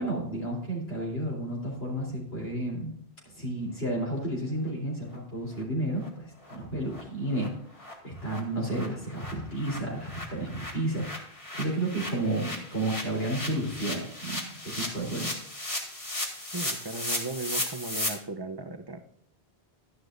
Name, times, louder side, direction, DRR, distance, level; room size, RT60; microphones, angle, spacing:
voice 1, 0.0-2.9 3.3-7.5 8.0-11.1 11.5-15.3, right 1 dB, 75° left, -4 dB, 4.0 m, -32 dB
sound 1, 5.1-5.2 5.5-5.6 6.0-6.1 6.4-6.6 6.9-7.0 7.3-7.5 7.8-7.9 8.2-18.1, left 1 dB, 30° left, 2.2 m, -36 dB
voice 2, 16.5-19.0, right 3 dB, 25° right, 8 dB, 0.8 m, -36 dB
12.0 x 11.0 x 2.7 m, 0.70 s
omnidirectional pair, 1.0 m